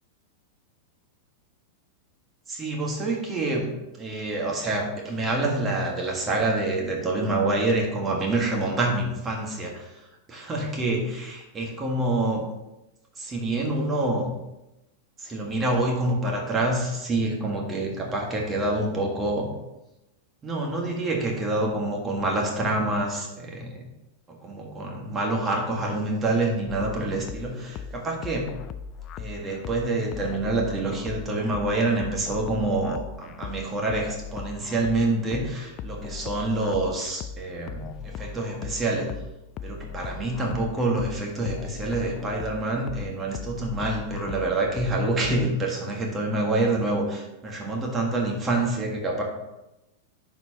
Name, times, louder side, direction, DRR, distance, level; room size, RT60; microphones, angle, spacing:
voice 1, 2.5-9.9 10.3-12.5 13.2-14.3 15.2-19.5 20.4-23.8 24.4-28.6 29.2-39.1 39.6-49.2, right 2 dB, 25° right, 0 dB, 1.7 m, -27 dB
sound 1, 26.7-45.5, left 6 dB, 40° left, 0.4 m, -39 dB
10.5 x 4.4 x 3.0 m, 0.96 s
hypercardioid pair, 110°, 0 cm